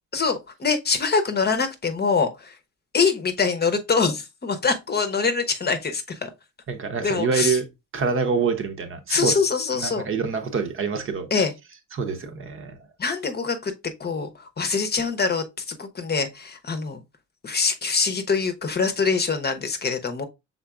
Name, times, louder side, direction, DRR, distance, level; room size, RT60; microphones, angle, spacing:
voice 1, 0.1-2.6 2.9-6.3 7.0-7.6 9.1-10.0 11.3-11.5 13.0-13.7 14.0-17.0 17.4-20.2, left 5 dB, 35° left, 0.8 m, -24 dB
voice 2, 6.7-7.7 7.9-9.3 9.7-11.4 11.9-12.8, right 5 dB, 45° right, 0.8 m, -26 dB
5.8 x 3.8 x 2.4 m
cardioid pair, 90°, 30 cm